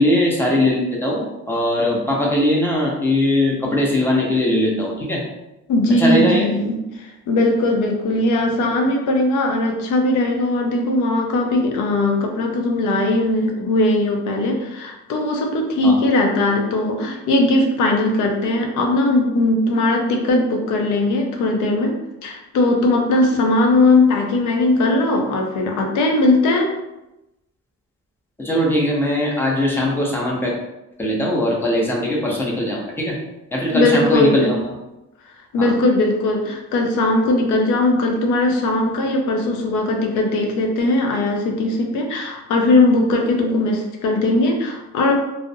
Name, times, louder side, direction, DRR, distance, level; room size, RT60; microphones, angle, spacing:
voice 1, 0.0-5.2 6.0-6.5 15.8-16.0 28.4-30.5 31.0-33.2 33.5-34.6 35.6-35.7, left 1 dB, 5° left, -3 dB, 0.6 m, -20 dB
voice 2, 5.7-22.0 22.2-26.7 33.7-34.5 35.5-45.1, left 2 dB, 90° left, 2 dB, 0.5 m, -19 dB
2.4 x 2.0 x 2.6 m, 0.94 s
cardioid pair, 90°, 30 cm